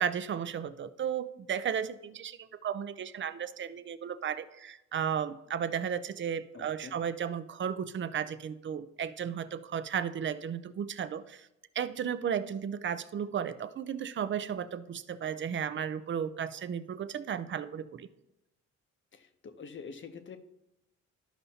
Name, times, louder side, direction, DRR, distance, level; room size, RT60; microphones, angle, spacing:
voice 1, 0.0-11.5 11.8-18.1, right 8 dB, 40° right, 13 dB, 0.5 m, -34 dB
voice 2, 6.5-6.9 19.1-20.4, left 5 dB, 40° left, 8 dB, 0.8 m, -46 dB
12.0 x 5.5 x 2.8 m, 0.88 s
cardioid pair, 90°, 30 cm